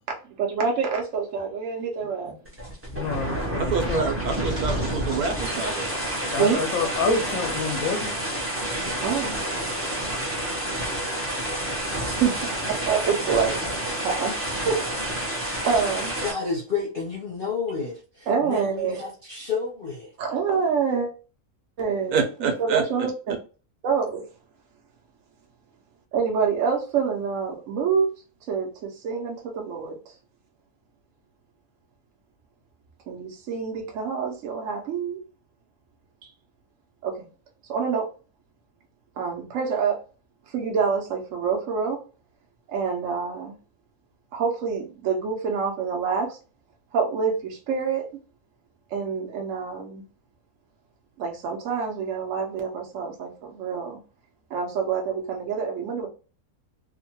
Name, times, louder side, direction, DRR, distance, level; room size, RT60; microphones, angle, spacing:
voice 1, 0.2-2.4 6.3-6.6 8.7-9.4 12.1-13.6 14.0-14.3 14.6-14.8 15.1-15.2 15.6-16.1 18.3-19.0 20.2-21.1 21.8-23.1 23.8-24.2 26.1-28.1 28.5-30.0 33.1-35.2 37.0-37.3 37.7-38.1 39.2-40.0 40.5-42.0 42.7-43.5 44.3-46.4 46.9-48.1 48.9-50.0 51.2-54.0 54.5-56.1, right 6 dB, 65° right, 1.0 m, -26 dB
sound 1, 2.4-16.3, right 1 dB, 15° right, 0.4 m, -29 dB
voice 2, 2.9-4.1 6.3-8.2, left 5 dB, 85° left, 1.1 m, -28 dB
voice 3, 3.6-5.9 22.1-22.8, right 5 dB, 90° right, 1.2 m, -27 dB
sound 2, 3.9-7.5 7.8-8.1 10.4-10.5, right 1 dB, 30° right, 0.9 m, -43 dB
voice 4, 16.2-20.1, left 5 dB, 50° left, 0.7 m, -30 dB
3.0 x 2.1 x 2.8 m
omnidirectional pair, 1.5 m